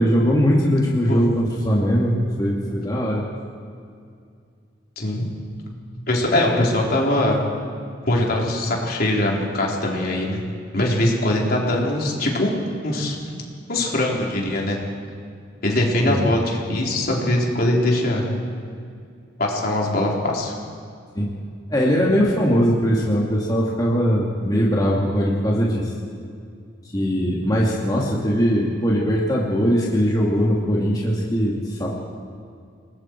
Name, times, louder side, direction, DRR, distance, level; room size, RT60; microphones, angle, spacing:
voice 1, 0.0-3.2 16.0-16.2 21.1-21.3 21.7-25.9 26.9-31.9, equal, 20° left, -5 dB, 2.4 m, -20 dB
voice 2, 5.0-5.3 6.1-7.4 8.0-10.4 10.7-12.6 12.8-13.4 13.7-14.8 15.6-18.2 19.4-20.5, left 1 dB, 50° left, -2 dB, 3.8 m, -22 dB
29.5 x 20.0 x 4.6 m, 2.3 s
head